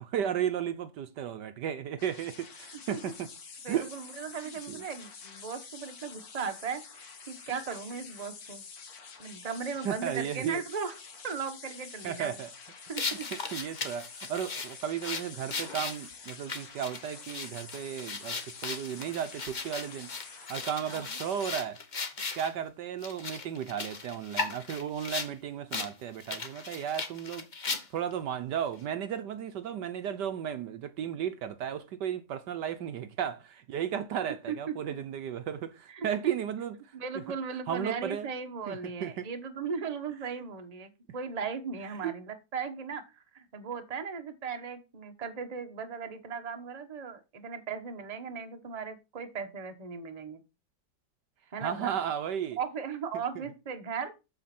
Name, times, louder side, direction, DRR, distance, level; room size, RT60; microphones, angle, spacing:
voice 1, 0.0-3.3 3.7-3.9 4.7-4.8 9.8-10.6 12.0-12.5 13.3-21.8 22.3-27.5 27.9-36.9 37.7-38.3 38.7-39.3 42.0-42.1 51.6-52.6, right 9 dB, 70° right, 1.3 m, -34 dB
sound 1, 2.0-21.5, left 5 dB, 55° left, 1.9 m, -48 dB
voice 2, 3.6-8.6 9.2-10.9 11.2-12.4 12.9-13.6 20.9-21.1 34.5-34.9 35.9-36.3 36.9-50.4 51.5-51.9 52.6-54.1, right 6 dB, 25° right, 1.0 m, -37 dB
sound 2, 13.0-22.5 23.0-25.3 25.7-25.9 26.2-28.1, left 4 dB, 35° left, 0.8 m, -37 dB
7.9 x 7.0 x 4.3 m
omnidirectional pair, 2.1 m